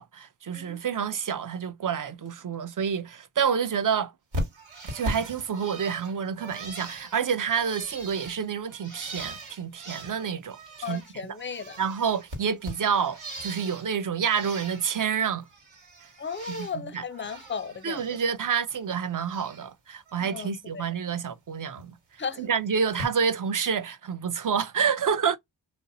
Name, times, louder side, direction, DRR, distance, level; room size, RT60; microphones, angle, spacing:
voice 1, 0.0-4.1 4.8-10.6 10.8-11.0 11.8-15.4 16.6-17.0 17.8-21.9 22.4-25.4, right 7 dB, 45° right, 0.6 m, -28 dB
Bird, 4.3-11.1 11.4-13.9 14.2-15.1 15.4-16.8 17.1-18.3 18.6-19.7 20.1-20.5 21.8-21.9 22.9-23.1, right 1 dB, 70° right, 1.5 m, -39 dB
voice 2, 10.8-11.8 16.2-18.2 20.2-20.9 22.2-22.4, left 6 dB, 25° left, 0.4 m, -35 dB
2.6 x 2.0 x 2.6 m
cardioid pair, 55°, 46 cm